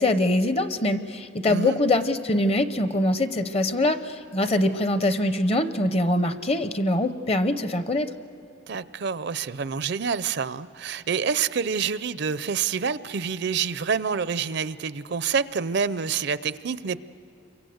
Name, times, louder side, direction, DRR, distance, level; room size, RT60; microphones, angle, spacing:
voice 1, 0.0-8.1, left 1 dB, 30° left, 11 dB, 0.8 m, -23 dB
voice 2, 1.5-1.8 8.7-17.0, right 6 dB, 55° right, 15 dB, 0.5 m, -27 dB
28.0 x 23.5 x 7.9 m, 2.8 s
head